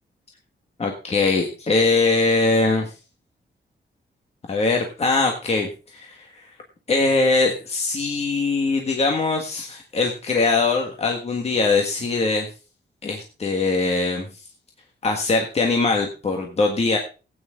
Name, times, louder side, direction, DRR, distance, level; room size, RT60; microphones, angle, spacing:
voice 1, 0.8-2.9 4.5-6.5 6.9-12.5 13.0-14.2 15.0-17.0, left 3 dB, 35° left, 2 dB, 1.6 m, -22 dB
17.0 x 9.2 x 3.7 m, 0.34 s
wide cardioid pair, 160°, 18 cm